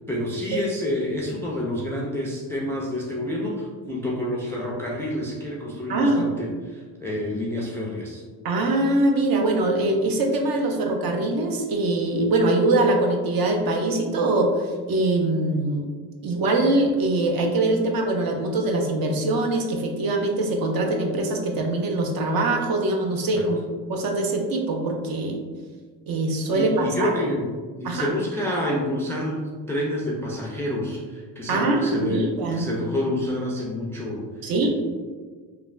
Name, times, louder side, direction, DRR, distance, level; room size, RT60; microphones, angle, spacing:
voice 1, 0.1-8.2 26.5-27.5 27.8-34.2 34.6-34.7, left 1 dB, 5° left, -3 dB, 0.3 m, -28 dB
voice 2, 5.9-6.2 8.4-15.9 16.2-23.6 23.9-25.4 26.1-27.1 27.8-28.1 31.5-32.7 34.4-34.7, right 2 dB, 50° right, 2 dB, 0.6 m, -23 dB
3.2 x 2.2 x 2.4 m, 1.5 s
cardioid pair, 85°, 46 cm